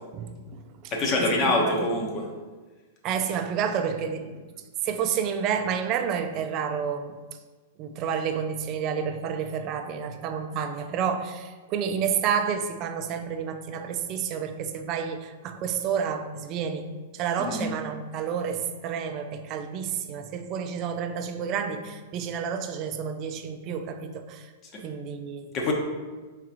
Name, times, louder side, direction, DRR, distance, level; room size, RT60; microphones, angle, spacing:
voice 1, 0.1-0.9 1.2-1.9 3.0-4.4 4.8-7.2 7.8-24.5 24.8-25.5, right 7 dB, 40° right, 7 dB, 0.4 m, -30 dB
voice 2, 0.9-2.3 17.4-17.7 25.5-25.7, left 2 dB, 35° left, 0 dB, 1.0 m, -25 dB
4.7 x 3.6 x 3.0 m, 1.3 s
hypercardioid pair, 110°, 0 cm